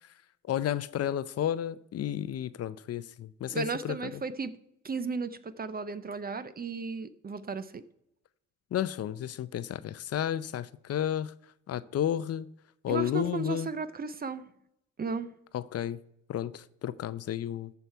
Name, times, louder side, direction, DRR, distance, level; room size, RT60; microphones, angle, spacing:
voice 1, 0.5-4.2 8.7-11.3 11.7-12.5 12.8-13.7 15.5-16.0 16.3-17.7, left 10 dB, 55° left, 0.6 m, -32 dB
voice 2, 3.5-4.5 4.8-7.8 12.9-14.4 15.0-15.3, right 5 dB, 30° right, 0.7 m, -35 dB
14.0 x 5.8 x 4.6 m
cardioid pair, 90°, 30 cm